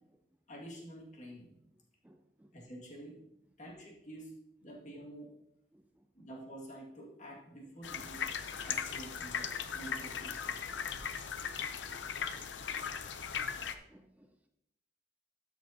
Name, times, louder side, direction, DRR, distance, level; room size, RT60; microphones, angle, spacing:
voice 1, 0.5-1.6 2.5-3.2 3.6-4.3 4.6-5.3 6.2-8.3 8.6-10.6, right 1 dB, 45° left, -2 dB, 2.1 m, -48 dB
voice 2, 2.0-2.5 5.7-5.8 12.1-12.7 13.6-14.5, right 1 dB, 10° right, 5 dB, 0.4 m, -64 dB
sound 1, 7.8-13.7, left 7 dB, 85° left, 0.6 m, -38 dB
12.5 x 6.3 x 2.8 m, 0.82 s
head